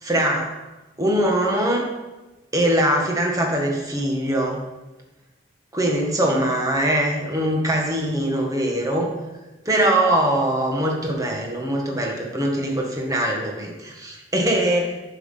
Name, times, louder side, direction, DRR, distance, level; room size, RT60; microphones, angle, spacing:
voice 1, 0.0-0.5 1.0-1.8 2.5-4.6 5.7-9.1 9.6-14.9, right 1 dB, 20° right, 0 dB, 1.8 m, -22 dB
10.5 x 5.9 x 5.8 m, 1.1 s
head